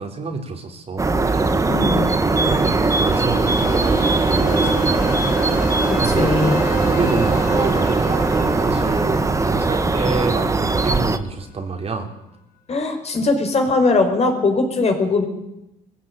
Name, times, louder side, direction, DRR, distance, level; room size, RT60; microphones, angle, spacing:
voice 1, 0.0-1.8 2.3-5.2 6.0-6.3 6.8-12.1, right 4 dB, 35° right, 3 dB, 3.6 m, -27 dB
sound 1, 1.0-11.2, right 3 dB, 20° right, 1.5 m, -19 dB
voice 2, 1.7-2.1 6.0-6.6 12.7-15.2, left 3 dB, 40° left, 5 dB, 5.0 m, -20 dB
sound 2, 2.2-11.0, equal, 55° left, 4.3 m, -32 dB
21.0 x 16.0 x 9.1 m, 0.86 s
cardioid pair, 110°, 17 cm